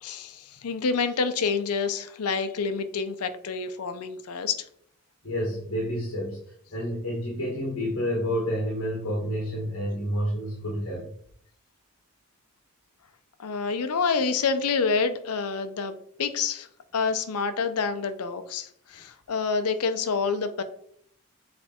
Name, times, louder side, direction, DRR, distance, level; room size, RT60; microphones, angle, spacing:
voice 1, 0.0-4.6 13.4-15.9 16.2-16.7 16.9-20.6, left 5 dB, 90° left, 9 dB, 0.6 m, -27 dB
voice 2, 5.2-11.1, equal, 65° left, -4 dB, 1.4 m, -29 dB
6.5 x 3.4 x 4.3 m, 0.67 s
head